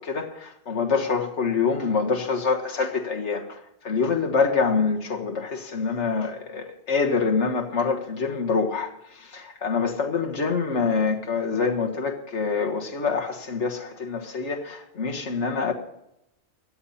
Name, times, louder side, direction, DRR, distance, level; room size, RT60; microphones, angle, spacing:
voice 1, 0.0-15.7, left 5 dB, 85° left, 1.9 m, -26 dB
17.0 x 11.5 x 4.2 m
omnidirectional pair, 1.2 m